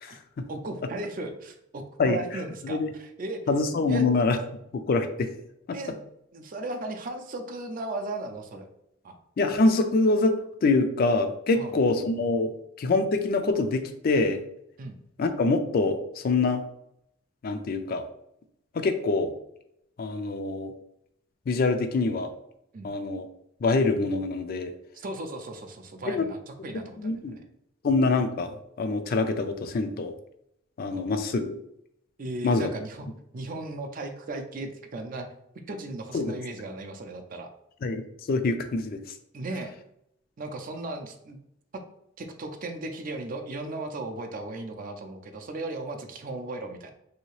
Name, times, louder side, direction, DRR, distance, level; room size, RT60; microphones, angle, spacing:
voice 1, 0.5-3.5 3.9-4.1 5.7-6.0 6.3-8.7 9.0-9.2 11.5-11.7 14.8-14.9 22.7-22.9 24.9-27.4 30.9-31.1 32.2-35.3 35.5-37.5 39.3-39.7 40.4-41.4 41.7-41.8 42.2-46.9, right 2 dB, 45° right, 5 dB, 0.4 m, -36 dB
voice 2, 3.5-4.4 4.7-5.3 5.7-5.8 9.4-12.5 12.8-14.4 15.2-16.6 17.4-18.0 18.7-19.3 20.0-20.7 21.5-22.3 22.8-23.2 23.6-24.7 26.1-26.3 27.0-27.4 27.8-30.1 30.8-31.6 32.4-32.7 36.1-36.3 37.8-38.0 38.3-39.0, left 3 dB, 45° left, 7 dB, 0.3 m, -25 dB
3.2 x 2.8 x 3.1 m, 0.77 s
head